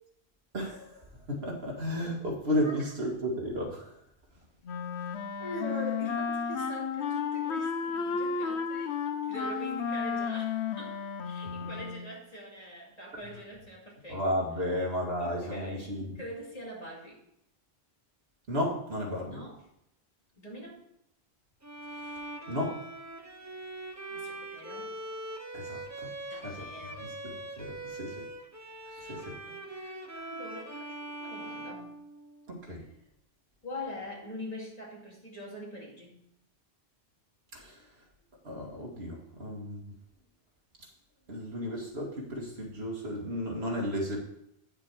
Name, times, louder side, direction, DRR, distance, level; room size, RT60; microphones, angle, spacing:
voice 1, 0.5-3.9 14.1-16.2 18.5-19.4 21.9-22.2 22.5-22.8 25.5-26.1 26.4-26.7 27.0-28.3 29.0-29.4 32.5-32.8 37.5-37.8 38.4-39.9 41.3-44.2, equal, 70° right, -1 dB, 2.3 m, -33 dB
Wind instrument woodwind instrument, 4.7-12.2, left 6 dB, 90° left, 1.0 m, -33 dB
voice 2, 5.4-8.9 9.3-14.3 15.2-15.9 16.2-17.2 19.3-19.6 20.4-20.8 24.1-24.9 26.3-27.1 28.9-31.9 33.6-36.2, equal, 35° left, -3 dB, 2.4 m, -43 dB
Bowed string instrument, 21.6-32.6, right 2 dB, 20° right, 0.7 m, -42 dB
8.9 x 6.6 x 4.7 m, 0.77 s
omnidirectional pair, 1.1 m